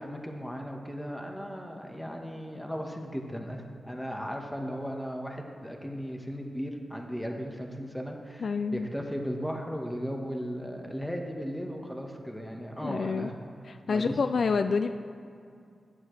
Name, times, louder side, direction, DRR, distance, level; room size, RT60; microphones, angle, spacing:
voice 1, 0.0-13.3 13.9-14.5, equal, 5° left, 2 dB, 1.5 m, -36 dB
voice 2, 8.4-8.9 12.8-13.3 13.7-14.9, left 5 dB, 65° left, 9 dB, 0.3 m, -28 dB
15.0 x 8.5 x 3.3 m, 2.4 s
cardioid pair, 50°, 0 cm